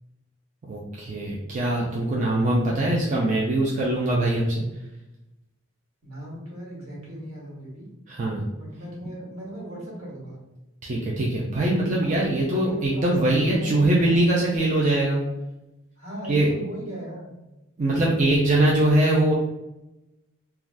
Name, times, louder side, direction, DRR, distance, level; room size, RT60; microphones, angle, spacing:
voice 1, 0.7-4.6 8.1-8.4 10.8-15.2 16.3-16.5 17.8-19.3, right 1 dB, 35° right, -4 dB, 0.4 m, -22 dB
voice 2, 6.0-7.9 8.6-10.5 12.0-14.2 16.0-17.3, right 1 dB, 75° right, -4 dB, 1.3 m, -38 dB
3.3 x 2.3 x 2.5 m, 0.97 s
head